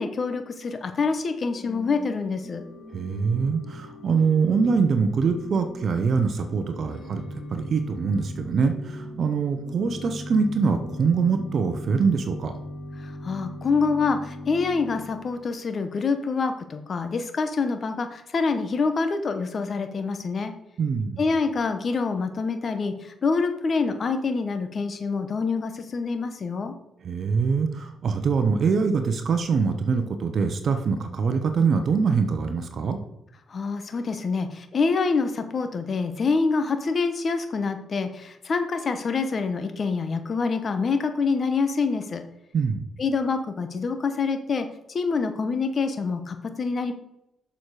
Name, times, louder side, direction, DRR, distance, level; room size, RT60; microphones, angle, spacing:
voice 1, 0.0-2.6 13.0-20.5 21.2-26.7 33.5-42.2 43.0-46.9, left 4 dB, 45° left, 7 dB, 1.0 m, -26 dB
Organ / Church bell, 1.3-15.5, left 1 dB, 30° left, 1.4 m, -39 dB
voice 2, 2.9-12.5 20.8-21.2 27.0-33.0 42.5-42.8, right 5 dB, 55° right, 7 dB, 0.9 m, -24 dB
7.1 x 6.4 x 4.9 m, 0.86 s
cardioid pair, 90°, 0 cm